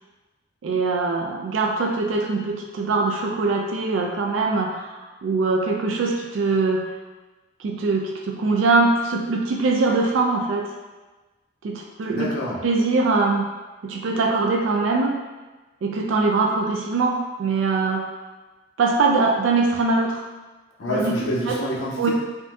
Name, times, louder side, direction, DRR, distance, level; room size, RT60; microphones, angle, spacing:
voice 1, 0.6-6.9 7.6-10.7 11.6-12.3 12.6-13.4 13.8-15.1 15.8-18.1 18.8-20.2 20.9-21.1 21.5-21.6 22.0-22.1, right 3 dB, 80° right, 1 dB, 0.3 m, -22 dB
voice 2, 12.1-12.6 20.8-22.1, equal, 80° left, -6 dB, 0.6 m, -27 dB
3.7 x 2.5 x 2.3 m, 1.2 s
head